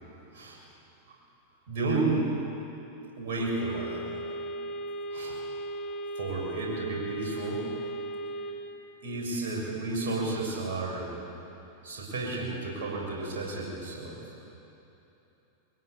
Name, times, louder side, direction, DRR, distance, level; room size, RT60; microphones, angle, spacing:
voice 1, 1.7-2.3 3.2-4.4 5.1-5.4 6.2-7.7 9.0-11.2 11.8-14.2, right 3 dB, 60° right, -3 dB, 6.9 m, -32 dB
sound 1, 3.4-8.5, right 1 dB, 40° left, 4.5 m, -37 dB
23.0 x 17.0 x 8.6 m, 3.0 s
figure-of-eight pair, 90°, 0 cm